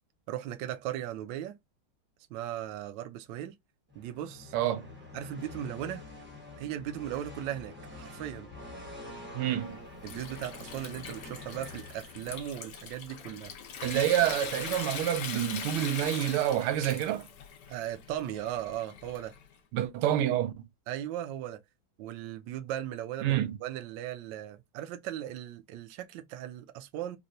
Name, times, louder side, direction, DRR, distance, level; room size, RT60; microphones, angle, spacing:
voice 1, 0.3-1.6 2.3-3.5 3.9-4.5 5.1-6.1 6.6-8.5 10.0-13.5 17.7-19.3 20.9-21.6 22.0-27.2, right 11 dB, 70° right, 1.2 m, -37 dB
sound 1, 3.9-12.6, left 2 dB, 10° right, 0.6 m, -46 dB
voice 2, 4.5-4.9 9.3-9.8 13.8-17.3 19.7-20.5 23.2-23.6, right 12 dB, 90° right, 1.5 m, -28 dB
Water tap faucet / Sink (filling or washing) / Trickle dribble, 9.6-19.5, left 7 dB, 65° left, 1.2 m, -42 dB
4.1 x 2.1 x 2.5 m
omnidirectional pair, 2.3 m